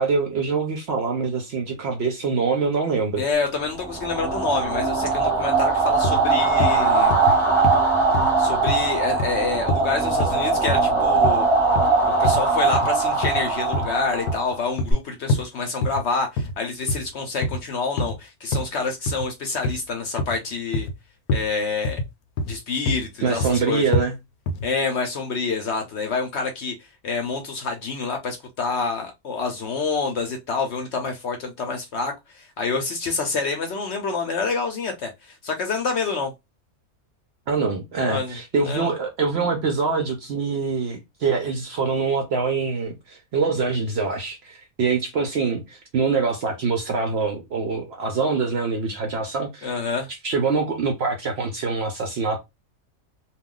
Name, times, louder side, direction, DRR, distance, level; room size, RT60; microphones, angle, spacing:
voice 1, 0.0-3.2 23.2-24.1 37.5-49.8 50.1-52.4, right 4 dB, 65° right, 0.6 m, -24 dB
voice 2, 3.2-7.2 8.4-11.5 12.1-20.9 21.3-22.0 22.4-23.8 24.6-26.7 27.0-36.3 38.0-38.9 49.6-50.1, left 4 dB, 60° left, 0.7 m, -27 dB
sound 1, 3.8-14.9, right 3 dB, 25° right, 0.7 m, -21 dB
sound 2, 6.0-6.2 6.6-6.8 7.1-7.4 7.6-7.8 8.1-8.3 8.7-8.8 9.2-9.4 9.7-9.9 10.2-10.4 10.7-10.8 11.2-11.4 11.8-11.9 12.2-12.4 12.7-12.9 13.2-13.4 13.7-13.9 14.3-15.0 15.3-15.4 15.8-16.0 16.4-16.6 16.9-17.1 17.4-17.6 18.0-18.2 18.5-18.7 19.1-19.3 19.6-19.8 20.2-20.4 20.7-20.9 21.3-21.5 21.8-22.1 22.4-22.6 22.9-23.0 23.4-23.6 23.9-24.1 24.5-24.7, left 1 dB, 80° left, 1.1 m, -25 dB
2.3 x 2.3 x 3.6 m
omnidirectional pair, 1.6 m